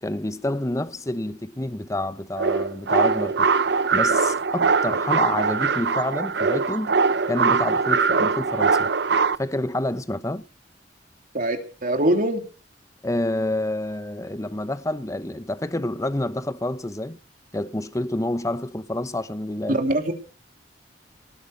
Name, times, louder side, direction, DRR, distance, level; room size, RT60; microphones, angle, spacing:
voice 1, 0.0-3.5 3.9-7.0 7.3-8.9 9.4-10.5 13.0-17.2 17.5-19.8, left 1 dB, 20° left, 0.9 m, -28 dB
sound 1, 2.4-9.4, right 5 dB, 65° right, 0.7 m, -22 dB
voice 2, 11.3-12.5 19.7-20.1, right 1 dB, 50° right, 3.1 m, -23 dB
19.0 x 9.5 x 6.6 m
head